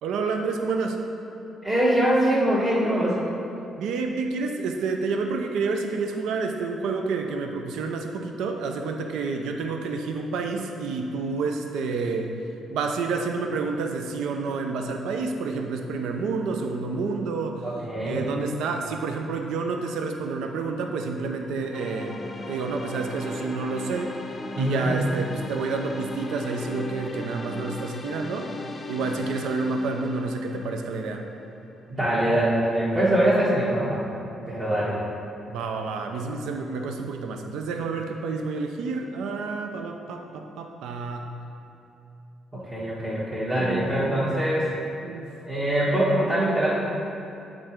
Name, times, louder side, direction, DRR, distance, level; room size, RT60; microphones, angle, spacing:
voice 1, 0.0-1.0 3.8-12.3 12.7-17.7 18.0-22.2 22.5-28.5 28.9-31.3 35.5-41.3 43.6-44.3 45.0-45.3, right 4 dB, 85° right, 4 dB, 0.4 m, -29 dB
voice 2, 1.6-3.2 17.6-18.3 24.5-24.9 31.9-34.0 34.5-35.0 42.5-44.7 45.5-46.7, right 1 dB, 25° right, -10 dB, 1.4 m, -23 dB
sound 1, 21.7-31.7, left 2 dB, 30° left, 0.5 m, -38 dB
7.8 x 3.7 x 4.4 m, 2.8 s
cardioid pair, 90°, 0 cm